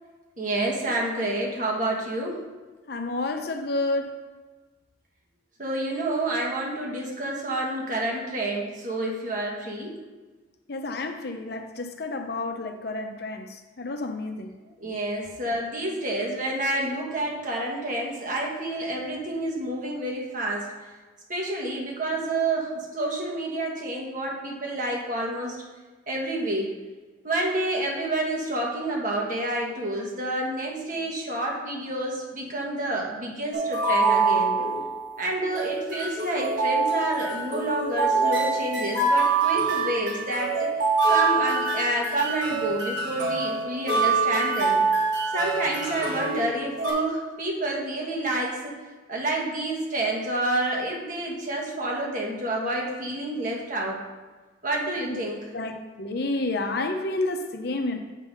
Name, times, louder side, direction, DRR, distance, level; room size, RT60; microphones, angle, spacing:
voice 1, 0.4-2.4 5.6-9.9 14.8-20.7 21.3-25.6 26.1-26.7 27.2-34.6 35.2-40.5 41.1-44.8 45.3-48.7 49.1-54.0 54.6-55.4, right 1 dB, 40° right, -1 dB, 1.5 m, -29 dB
voice 2, 2.9-4.1 10.7-14.5 55.1-55.2 55.5-58.0, left 2 dB, 55° left, 5 dB, 0.6 m, -30 dB
sound 1, 33.5-35.1 35.5-46.9, right 4 dB, 65° right, 1.8 m, -25 dB
8.1 x 3.9 x 5.3 m, 1.3 s
head